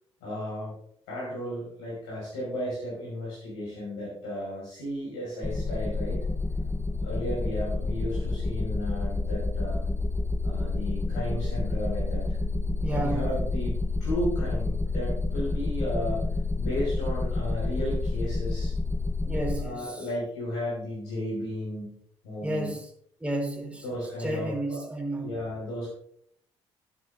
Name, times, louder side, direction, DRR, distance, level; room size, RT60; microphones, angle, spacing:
voice 1, 0.2-0.8 1.1-6.2 7.0-9.8 10.4-12.4 12.9-16.3 16.6-18.7 19.6-22.0 22.2-22.8 23.8-24.8 25.2-25.9, equal, 80° left, 5.4 m, -34 dB
sound 1, 5.4-19.6, left 3 dB, 15° left, 1.2 m, -29 dB
voice 2, 12.8-13.3 19.2-20.1 22.4-22.9 23.2-23.8 24.2-25.4, right 1 dB, 10° right, 5.1 m, -32 dB
13.0 x 12.5 x 2.7 m
hypercardioid pair, 45°, 14 cm